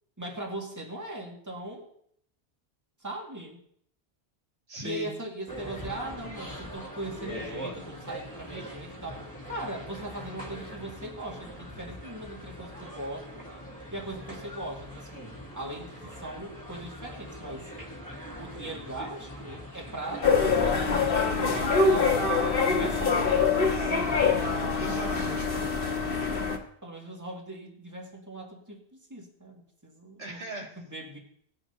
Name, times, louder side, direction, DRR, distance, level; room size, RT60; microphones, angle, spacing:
voice 1, 0.2-1.9 3.0-3.6 4.8-13.4 13.9-17.7 18.4-22.3 22.7-23.3 26.8-30.4 30.9-31.2, right 1 dB, 15° right, 0 dB, 2.0 m, -39 dB
voice 2, 4.7-5.1 24.4-25.8 30.2-30.8, right 1 dB, 80° right, -2 dB, 2.5 m, -39 dB
sound 1, 5.5-20.3, equal, 5° left, 2.3 m, -42 dB
sound 2, 20.2-26.6, left 4 dB, 60° left, 1.5 m, -24 dB
18.5 x 10.5 x 2.8 m, 0.65 s
omnidirectional pair, 1.1 m